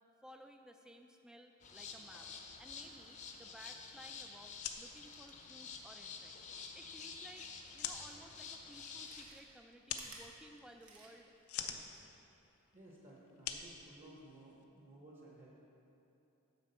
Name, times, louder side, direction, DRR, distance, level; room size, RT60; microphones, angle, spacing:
voice 1, 0.2-2.3 2.6-6.5 6.8-7.5 7.7-11.3 11.6-12.1, right 1 dB, 5° right, 4 dB, 0.3 m, -58 dB
sound 1, 1.6-9.2, left 5 dB, 35° left, 0.6 m, -50 dB
sound 2, 4.5-14.6, left 8 dB, 75° left, 0.6 m, -48 dB
Chewing mastication, 8.9-11.4 11.8-11.9, right 3 dB, 85° right, 1.2 m, -57 dB
voice 2, 12.7-15.5, right 1 dB, 40° right, -4 dB, 1.1 m, -57 dB
9.5 x 4.5 x 6.8 m, 2.9 s
head